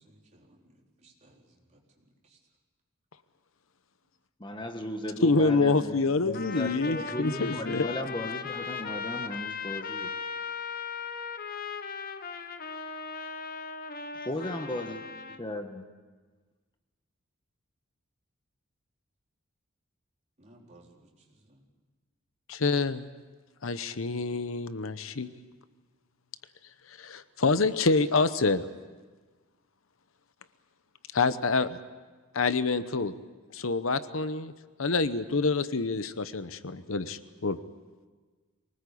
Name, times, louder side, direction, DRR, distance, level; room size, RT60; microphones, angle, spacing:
voice 1, 0.0-2.4 14.5-14.9 20.4-21.7, right 1 dB, 35° right, -1 dB, 4.2 m, -59 dB
voice 2, 4.4-5.9 6.2-10.1 14.1-15.0 15.3-15.8, left 1 dB, 25° left, 5 dB, 1.4 m, -36 dB
voice 3, 5.2-7.9 22.5-23.1 23.6-25.3 26.9-28.6 31.1-31.8 32.3-33.1 33.5-34.5 34.8-37.6, left 3 dB, 70° left, 12 dB, 0.9 m, -27 dB
Trumpet, 6.3-15.4, left 5 dB, 45° left, 1.1 m, -38 dB
24.0 x 19.5 x 8.5 m, 1.4 s
head